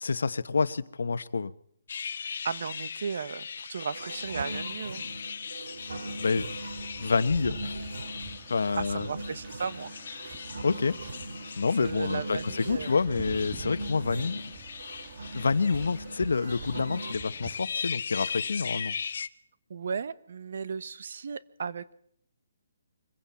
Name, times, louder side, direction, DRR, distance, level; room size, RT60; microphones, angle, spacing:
voice 1, 0.0-1.5 6.2-6.6 7.0-7.8 8.5-9.1 10.6-11.0 11.6-14.4 15.3-19.0, left 4 dB, 85° left, 15 dB, 1.1 m, -28 dB
sound 1, 1.9-19.3, left 6 dB, 55° left, 0.9 m, -39 dB
voice 2, 2.4-5.0 8.8-9.9 11.8-13.0 19.7-21.9, right 6 dB, 55° right, 16 dB, 1.1 m, -35 dB
sound 2, 3.9-17.2, right 2 dB, 70° right, 2.7 m, -41 dB
sound 3, 6.0-17.6, right 4 dB, 25° right, 1.6 m, -46 dB
24.0 x 16.0 x 8.5 m, 0.67 s
hypercardioid pair, 170°, 0 cm